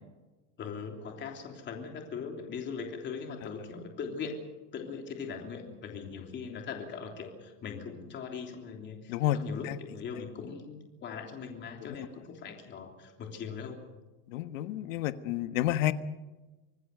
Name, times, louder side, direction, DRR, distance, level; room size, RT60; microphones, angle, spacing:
voice 1, 0.6-4.4 4.7-13.8, left 6 dB, 30° left, 3 dB, 3.3 m, -40 dB
voice 2, 14.3-15.9, left 14 dB, 85° left, 11 dB, 1.5 m, -30 dB
25.5 x 19.5 x 6.8 m, 1.1 s
cardioid pair, 160°, 38 cm